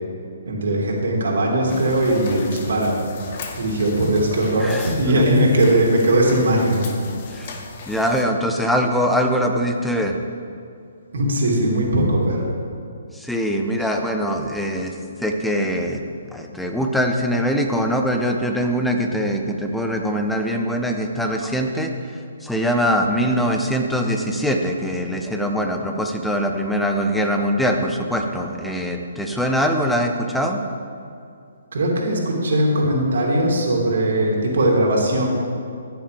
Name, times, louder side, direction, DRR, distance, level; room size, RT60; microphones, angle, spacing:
voice 1, 0.5-3.0 3.6-6.8 11.1-12.5 31.7-35.3, right 1 dB, 65° right, -1 dB, 2.8 m, -19 dB
sound 1, 1.7-8.2, left 4 dB, 45° left, 1.4 m, -37 dB
voice 2, 4.6-5.2 7.3-7.6 7.9-10.2 13.1-14.9 15.2-16.0 16.3-21.9 22.4-30.6, equal, ahead, 2 dB, 1.0 m, -22 dB
14.5 x 10.5 x 3.5 m, 2.4 s
figure-of-eight pair, 130°, 0 cm